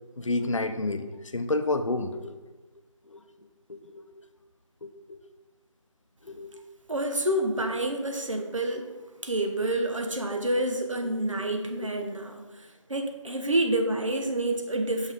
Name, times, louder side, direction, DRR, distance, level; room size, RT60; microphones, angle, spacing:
voice 1, 0.2-1.1 1.3-2.4 3.1-3.2 3.7-4.0 4.8-5.2 6.2-6.5, left 2 dB, 65° left, 8 dB, 0.6 m, -30 dB
voice 2, 6.9-8.9 9.2-15.1, right 1 dB, 70° right, 4 dB, 1.0 m, -28 dB
6.3 x 5.6 x 3.6 m, 1.2 s
figure-of-eight pair, 175°, 17 cm